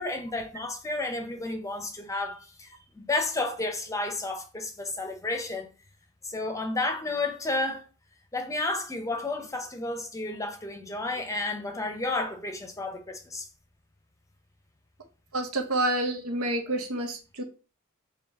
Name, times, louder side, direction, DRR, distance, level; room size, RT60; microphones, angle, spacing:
voice 1, 0.0-5.7 6.2-7.8 8.3-13.5, left 2 dB, 15° left, 0.6 m, -31 dB
voice 2, 15.3-17.4, right 1 dB, 90° right, 0.9 m, -28 dB
4.0 x 2.9 x 3.5 m
head